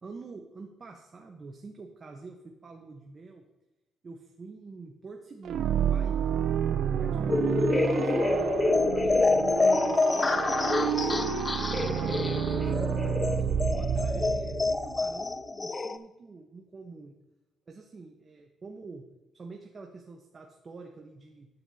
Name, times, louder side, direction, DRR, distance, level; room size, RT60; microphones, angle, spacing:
voice 1, 0.0-3.4 4.0-6.4 7.0-11.9 12.4-17.2 17.7-19.0 19.3-21.5, right 4 dB, 35° right, 2 dB, 1.1 m, -47 dB
sound 1, 5.4-15.2, right 8 dB, 70° right, 0.5 m, -29 dB
sound 2, 7.3-16.0, left 3 dB, 25° left, 0.5 m, -27 dB
10.5 x 9.4 x 2.8 m, 1.1 s
cardioid pair, 90°, 0 cm